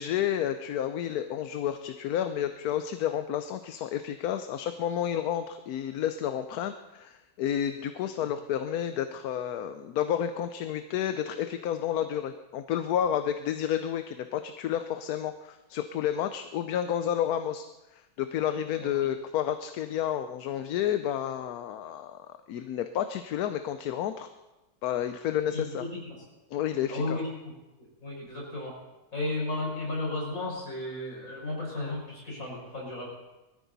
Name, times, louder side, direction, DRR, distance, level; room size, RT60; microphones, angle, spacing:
voice 1, 0.0-17.7 17.9-24.3 24.8-25.8 26.5-27.2, left 10 dB, 75° left, 9 dB, 1.1 m, -30 dB
voice 2, 25.5-26.2 26.9-27.3 28.0-28.7 29.1-33.1, left 2 dB, 55° left, -3 dB, 5.5 m, -34 dB
20.5 x 14.0 x 4.0 m, 1.1 s
omnidirectional pair, 1.7 m